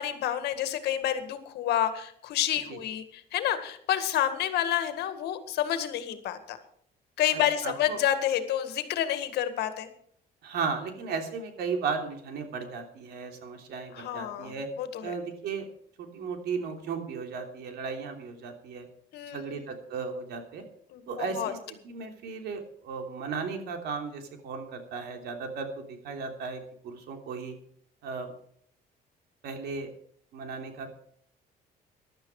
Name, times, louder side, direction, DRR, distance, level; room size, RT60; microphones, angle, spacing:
voice 1, 0.0-6.6 7.2-9.9 13.9-15.1 19.1-19.7 20.9-21.5, left 11 dB, 75° left, 10 dB, 1.9 m, -29 dB
voice 2, 7.3-8.0 10.4-14.7 15.0-15.7 16.0-18.9 19.3-20.6 21.1-27.5 28.0-28.3 29.4-29.9 30.3-30.9, right 5 dB, 75° right, 4 dB, 3.2 m, -35 dB
16.0 x 12.0 x 4.9 m, 0.64 s
cardioid pair, 110°, 17 cm